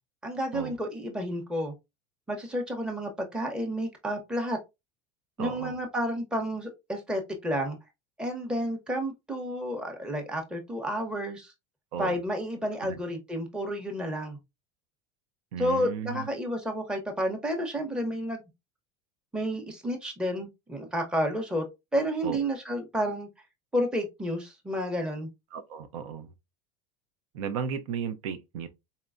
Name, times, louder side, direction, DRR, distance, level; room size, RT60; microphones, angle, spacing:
voice 1, 0.2-1.7 2.3-4.6 5.4-7.8 8.2-11.5 12.0-14.4 15.6-18.4 19.3-21.7 21.9-23.3 23.7-25.3, equal, 5° right, 0.7 m, -31 dB
voice 2, 5.4-5.8 11.9-12.2 12.8-13.0 15.5-16.3 22.2-22.4 25.5-26.3 27.3-28.7, right 7 dB, 85° right, 0.6 m, -35 dB
4.0 x 2.1 x 2.4 m
supercardioid pair, 120°, 17 cm